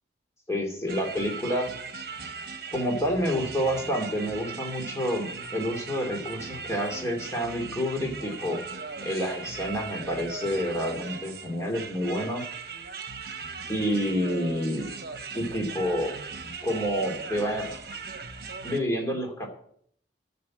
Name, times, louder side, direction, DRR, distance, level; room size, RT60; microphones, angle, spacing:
voice 1, 0.5-1.7 2.7-8.6 9.0-12.4 13.7-14.9 15.3-16.1 16.6-17.7 18.6-19.5, equal, 15° left, 1 dB, 2.5 m, -28 dB
sound 1, 0.9-18.8, right 5 dB, 55° right, 1.2 m, -39 dB
10.5 x 6.8 x 8.7 m, 0.65 s
head